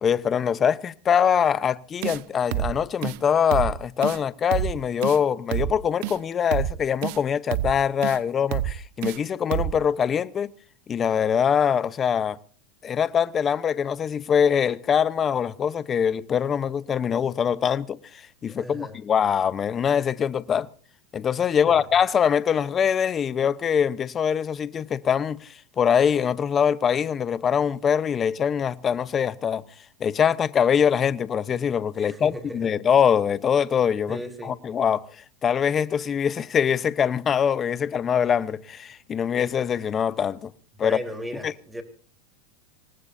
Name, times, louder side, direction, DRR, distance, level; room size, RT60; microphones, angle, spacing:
voice 1, 0.0-10.5 10.9-12.4 12.8-20.7 21.1-29.6 30.0-40.5 40.8-41.0 41.4-41.5, left 8 dB, 25° left, 0.8 m, -23 dB
sound 1, 2.0-2.2 2.5-2.7 3.0-3.2 3.5-3.7 4.0-4.2 4.5-4.7 5.0-5.2 5.5-5.7 6.0-6.2 6.5-6.7 7.0-7.2 7.5-7.7 8.0-8.2 8.5-8.7 9.0-9.2 9.5-9.7, right 13 dB, 60° right, 0.9 m, -27 dB
voice 2, 18.5-19.0 21.5-21.9 32.0-32.7 34.1-34.6 40.8-41.8, equal, 5° right, 3.7 m, -36 dB
27.0 x 19.0 x 2.7 m
supercardioid pair, 120°, 0 cm